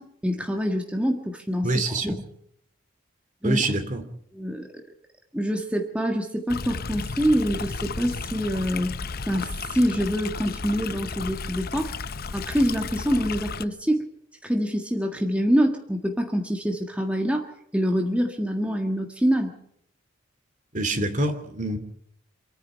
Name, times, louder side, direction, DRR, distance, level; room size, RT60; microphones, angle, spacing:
voice 1, 0.0-1.7 2.0-2.2 3.4-3.6 4.3-4.7 5.3-9.0 9.3-11.9 12.3-14.1 14.4-19.5, equal, 5° right, 2 dB, 1.6 m, -25 dB
voice 2, 1.6-2.1 3.4-4.0 20.7-21.8, right 2 dB, 40° right, 9 dB, 2.5 m, -25 dB
Stream, 6.5-13.6, left 4 dB, 45° left, 0.7 m, -34 dB
27.0 x 9.8 x 9.9 m, 0.73 s
head